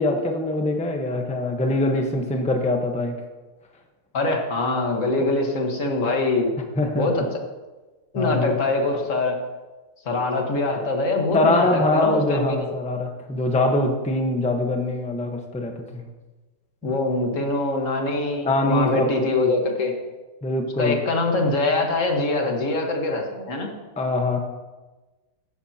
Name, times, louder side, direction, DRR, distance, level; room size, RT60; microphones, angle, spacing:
voice 1, 0.0-3.1 6.8-7.1 8.1-8.6 11.3-16.1 16.8-16.9 18.4-19.3 20.4-21.0 24.0-24.4, left 2 dB, 10° left, 3 dB, 0.3 m, -23 dB
voice 2, 4.1-6.5 6.9-7.4 8.1-9.4 10.0-12.7 16.8-19.9 20.8-23.7, left 2 dB, 40° left, 2 dB, 1.6 m, -23 dB
14.5 x 11.0 x 2.9 m, 1.2 s
omnidirectional pair, 2.4 m